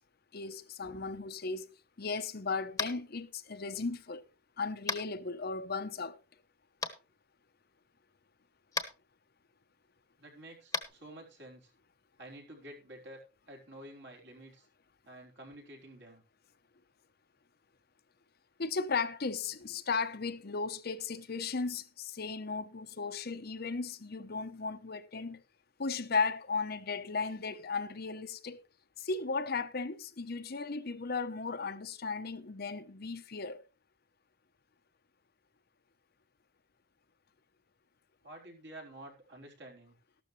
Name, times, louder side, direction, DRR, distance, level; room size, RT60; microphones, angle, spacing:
voice 1, 0.3-1.7 2.0-4.2 4.6-6.2 18.6-25.4 25.8-28.6 29.0-33.6, left 4 dB, 50° left, 0.8 m, -36 dB
Tap, 2.7-3.0 4.9-5.0 6.8-6.9 8.7-8.9 10.7-10.8, left 4 dB, 15° left, 1.1 m, -33 dB
voice 2, 10.2-11.7 12.2-14.7 15.1-16.2 38.2-40.0, right 1 dB, 65° right, 4.0 m, -50 dB
13.5 x 12.0 x 3.2 m
head